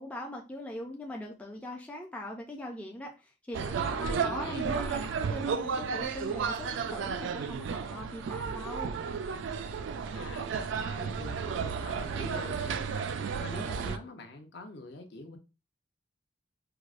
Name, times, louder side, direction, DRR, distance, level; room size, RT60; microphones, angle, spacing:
voice 1, 0.0-9.0, left 1 dB, 5° left, 0.3 m, -41 dB
sound 1, 3.5-14.0, right 6 dB, 70° right, 0.3 m, -33 dB
voice 2, 4.1-4.6 9.7-9.8 10.1-13.1 13.4-15.4, left 2 dB, 55° left, 0.6 m, -44 dB
4.6 x 2.0 x 2.4 m
head